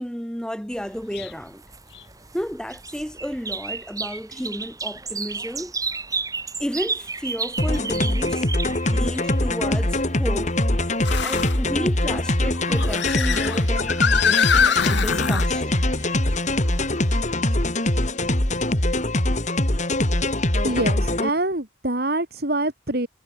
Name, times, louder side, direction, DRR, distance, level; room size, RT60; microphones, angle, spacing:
voice 1, 0.0-1.6 2.3-5.7 6.6-8.5 8.9-10.6 11.2-15.8, equal, 5° left, 4.5 m, -32 dB
sound 1, 0.7-17.2, right 4 dB, 20° right, 6.8 m, -35 dB
sound 2, 1.1-1.3 1.9-2.0 4.1-4.2 7.7-7.8 11.0-11.6 12.5-15.5, left 6 dB, 65° left, 1.1 m, -23 dB
sound 3, 7.6-21.3, left 1 dB, 40° left, 3.0 m, -23 dB
voice 2, 20.6-23.1, right 2 dB, 55° right, 3.4 m, -25 dB
head